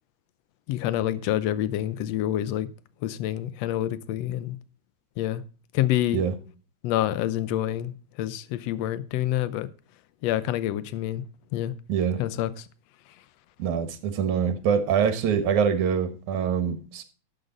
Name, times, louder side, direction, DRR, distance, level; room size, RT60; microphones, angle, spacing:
voice 1, 0.7-2.7 3.0-4.6 5.2-5.4 5.7-6.2 6.8-7.9 8.2-9.7 10.2-11.2 11.5-11.7 12.2-12.5, left 13 dB, 70° left, 1.7 m, -27 dB
voice 2, 11.9-12.2 13.6-17.0, right 7 dB, 75° right, 2.7 m, -24 dB
12.0 x 8.1 x 3.9 m
omnidirectional pair, 3.4 m